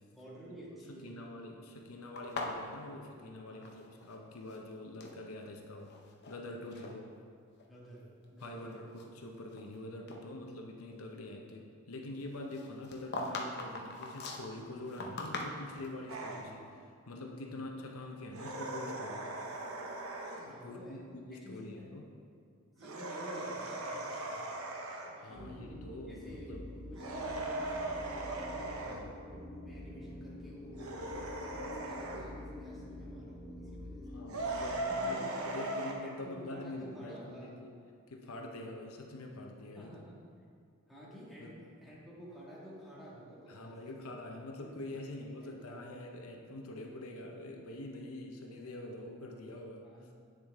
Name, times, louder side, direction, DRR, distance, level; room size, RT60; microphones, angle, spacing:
voice 1, 0.1-1.3 3.5-3.8 6.7-6.9 7.6-9.0 17.4-17.6 20.5-21.0 21.3-21.9 22.8-24.6 25.2-25.8 26.1-26.5 26.9-34.2 35.0-35.7 36.0-37.6 39.8-40.2 40.9-44.0 44.6-45.1 45.4-45.5 45.8-45.9 49.8-50.1, equal, ahead, -8 dB, 1.6 m, -51 dB
voice 2, 0.9-5.9 6.3-7.0 8.4-19.5 20.5-22.0 25.2-26.7 28.8-29.2 34.1-37.7 38.1-39.9 41.4-41.5 43.5-49.8, left 1 dB, 80° left, 2 dB, 0.8 m, -45 dB
sound 1, 2.2-4.2 4.4-5.2 5.8-6.4 6.7-6.9 7.6-7.7 8.2-9.8 10.1-10.2 12.5-15.9, left 2 dB, 50° left, 0.8 m, -41 dB
sound 2, 16.1-16.5 18.3-20.5 22.8-25.2 26.9-29.0 30.7-32.3 34.3-35.9, right 2 dB, 85° right, 0.9 m, -39 dB
sound 3, 25.3-34.8, left 1 dB, 15° right, 1.0 m, -47 dB
8.2 x 6.8 x 3.5 m, 2.3 s
head